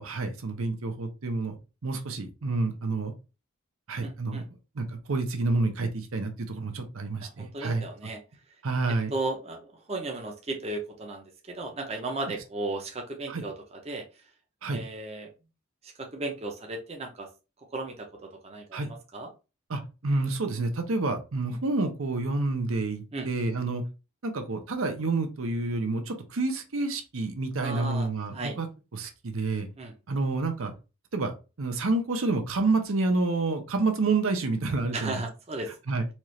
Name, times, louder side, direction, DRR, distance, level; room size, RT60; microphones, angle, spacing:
voice 1, 0.0-1.6 1.8-3.1 3.9-4.4 4.8-7.9 8.6-9.1 13.3-13.4 14.6-14.8 18.7-18.9 19.7-23.8 24.2-28.7 28.9-29.7 30.1-30.7 31.1-35.2 35.9-36.0, right 3 dB, 75° right, 6 dB, 0.8 m, -29 dB
voice 2, 4.0-4.4 7.2-8.2 9.1-9.6 9.9-14.0 14.7-15.3 16.0-17.3 17.7-18.8 19.1-19.3 23.1-23.3 27.6-28.1 28.3-28.6 29.8-29.9 34.9-35.7, right 2 dB, 30° right, 2 dB, 0.6 m, -35 dB
4.3 x 2.4 x 3.1 m, 0.29 s
head